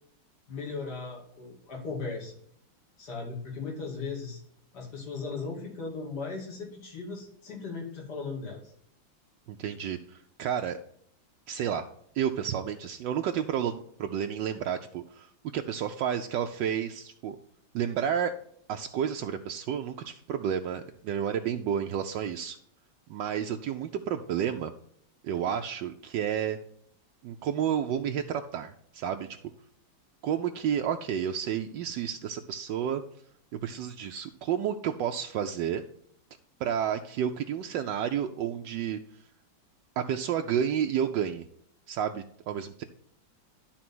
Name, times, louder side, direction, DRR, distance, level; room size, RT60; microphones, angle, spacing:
voice 1, 0.5-2.4 3.0-4.4 4.7-8.7, left 4 dB, 55° left, -2 dB, 3.0 m, -37 dB
voice 2, 9.5-10.8 11.5-11.9 12.1-15.3 15.5-17.4 17.7-18.3 18.7-22.6 23.1-24.7 25.2-26.6 27.2-29.3 30.2-33.0 33.5-35.9 36.6-39.0 40.0-41.4 41.9-42.8, right 9 dB, 75° right, 6 dB, 1.2 m, -31 dB
12.0 x 4.1 x 6.1 m, 0.67 s
omnidirectional pair, 2.1 m